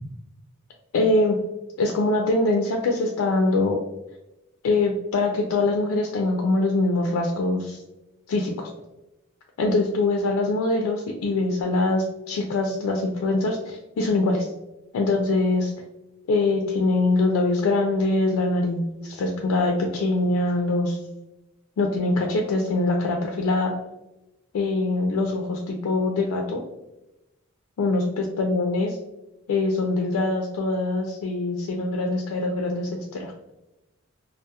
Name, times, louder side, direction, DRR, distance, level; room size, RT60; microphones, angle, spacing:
voice 1, 0.9-1.4 1.8-3.8 4.6-7.8 8.3-8.7 9.6-14.5 14.9-15.7 16.3-21.0 21.8-23.8 24.5-26.6 27.8-29.0 29.5-33.3, left 2 dB, 85° left, 1 dB, 0.3 m, -23 dB
2.2 x 2.0 x 2.7 m, 0.96 s
head